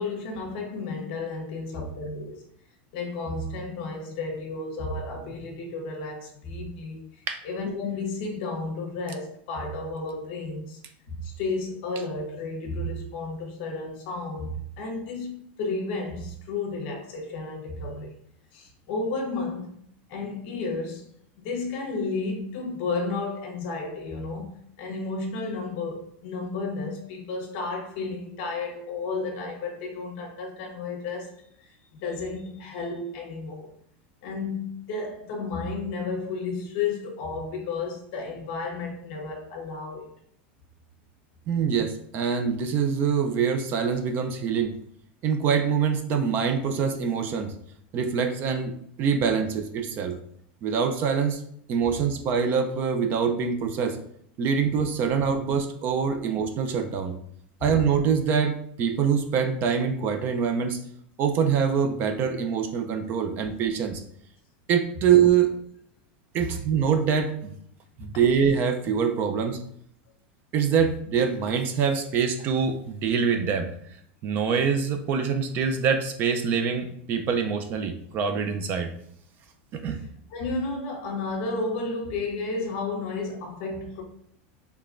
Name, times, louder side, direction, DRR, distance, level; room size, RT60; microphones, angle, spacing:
voice 1, 0.0-2.4 2.9-7.0 7.4-10.8 11.1-18.1 18.5-19.8 20.1-21.1 21.4-31.4 31.9-33.7 34.2-40.1 68.0-68.1 80.3-84.0, left 3 dB, 50° left, 1.1 m, -32 dB
voice 2, 41.5-44.7 45.2-47.5 47.9-50.2 50.6-51.4 51.7-54.0 54.4-57.1 57.6-60.8 61.2-64.0 64.7-65.5 66.3-67.6 68.0-69.6 70.5-73.7 74.2-78.9 79.7-80.0, right 6 dB, 35° right, 0.4 m, -24 dB
4.9 x 3.3 x 2.5 m
supercardioid pair, 160°, 6 cm